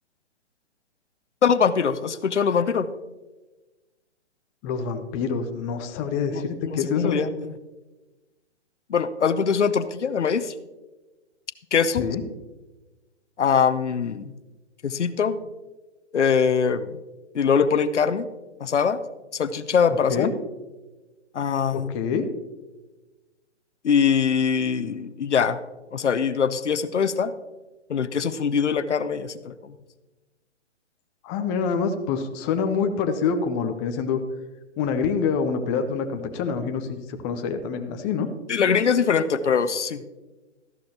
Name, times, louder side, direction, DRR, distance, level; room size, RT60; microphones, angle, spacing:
voice 1, 1.4-2.9 6.3-7.5 8.9-10.5 11.7-12.0 13.4-14.3 14.8-15.4 16.1-16.9 17.3-18.3 18.6-19.0 19.3-20.3 21.3-21.9 23.8-25.6 25.9-27.3 27.9-29.7 38.5-40.0, left 6 dB, 85° left, 13 dB, 0.8 m, -22 dB
voice 2, 4.6-7.2 11.9-12.2 20.1-20.3 21.7-22.2 31.2-34.2 34.8-38.3, left 6 dB, 20° left, 6 dB, 0.6 m, -26 dB
14.0 x 11.5 x 2.9 m, 1.2 s
hypercardioid pair, 135°, 34 cm